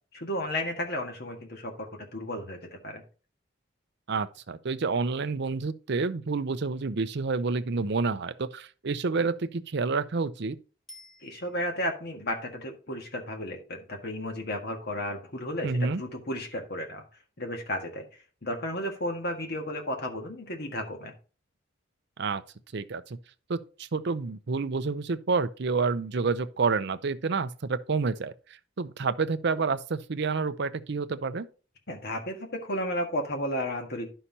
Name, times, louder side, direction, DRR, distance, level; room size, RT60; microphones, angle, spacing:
voice 1, 0.1-3.0 11.2-17.0 17.4-18.1 18.4-21.1 31.9-34.1, left 1 dB, 50° left, 1.7 m, -33 dB
voice 2, 4.1-10.6 15.6-16.0 22.2-22.4 22.7-23.2 23.5-28.3 28.8-31.5, right 4 dB, 55° right, 0.5 m, -29 dB
Bicycle bell, 10.9-12.0 21.1-21.2, left 1 dB, ahead, 1.3 m, -52 dB
11.5 x 5.7 x 2.8 m
head